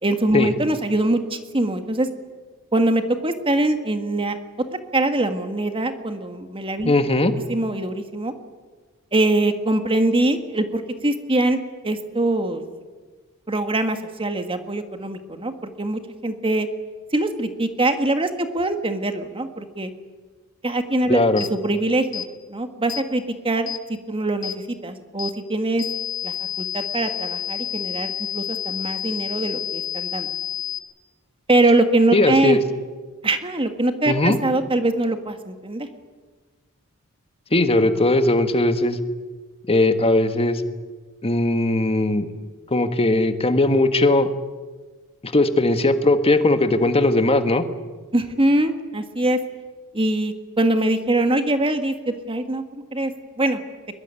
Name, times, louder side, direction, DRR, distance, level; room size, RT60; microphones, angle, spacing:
voice 1, 0.0-2.1 2.7-4.4 4.9-6.9 7.5-8.3 9.1-11.6 11.8-12.6 13.5-16.7 17.1-19.9 20.6-22.2 22.5-25.9 26.2-30.3 31.5-32.6 33.2-35.9 48.1-49.4 49.9-53.1 53.4-53.6, right 2 dB, 25° right, 7 dB, 1.8 m, -23 dB
voice 2, 6.8-7.3 21.1-21.4 32.1-32.6 34.1-34.4 37.5-39.0 39.7-40.6 41.2-42.3 42.7-44.3 45.2-47.6, left 2 dB, 25° left, 8 dB, 1.7 m, -19 dB
sound 1, 21.4-21.5 22.1-22.3 22.9-23.1 23.7-23.8 24.4-24.6 25.2-25.4 25.8-30.8, left 11 dB, 60° left, 2.2 m, -29 dB
22.5 x 22.0 x 9.9 m, 1.4 s
head